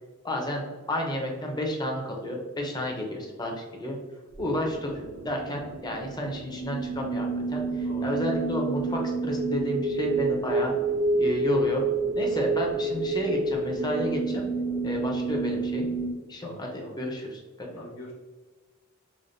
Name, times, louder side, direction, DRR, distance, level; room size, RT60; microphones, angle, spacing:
voice 1, 0.2-4.0 4.4-10.7 11.1-11.8 12.2-14.4 14.8-15.9 16.3-17.7, left 1 dB, 20° left, 1 dB, 0.6 m, -31 dB
sound 1, 4.4-16.1, right 3 dB, 40° right, 0.5 m, -29 dB
voice 2, 16.4-17.0 17.7-18.1, left 1 dB, 85° left, -3 dB, 0.9 m, -43 dB
5.0 x 2.2 x 2.6 m, 1.3 s
head